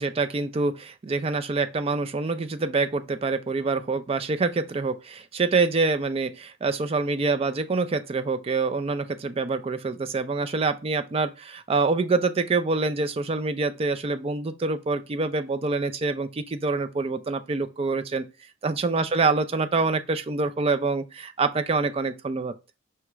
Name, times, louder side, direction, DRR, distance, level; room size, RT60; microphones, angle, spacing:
voice 1, 0.0-18.3 18.6-22.5, right 3 dB, 30° right, 0.3 m, -26 dB
5.6 x 2.4 x 3.0 m
head